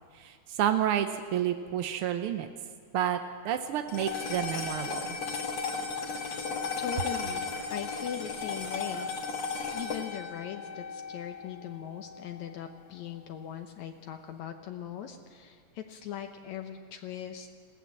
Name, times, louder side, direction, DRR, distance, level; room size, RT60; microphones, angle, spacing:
voice 1, 0.1-2.5 2.9-3.2 3.4-5.2, right 10 dB, 75° right, 7 dB, 1.3 m, -30 dB
sound 1, 3.9-12.4, left 5 dB, 55° left, 2.8 m, -35 dB
voice 2, 6.2-6.5 6.8-9.1 9.7-17.5, left 9 dB, 75° left, 6 dB, 2.2 m, -40 dB
21.5 x 16.0 x 7.4 m, 2.1 s
omnidirectional pair, 3.5 m